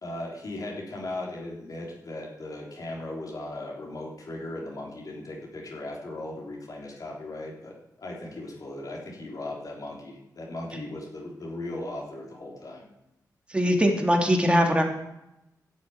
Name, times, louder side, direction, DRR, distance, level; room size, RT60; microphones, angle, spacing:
voice 1, 0.0-12.8, left 2 dB, 60° left, -2 dB, 3.5 m, -37 dB
voice 2, 13.5-14.8, equal, 15° right, 2 dB, 3.0 m, -21 dB
12.5 x 7.2 x 9.4 m, 0.88 s
cardioid pair, 70°, 7 cm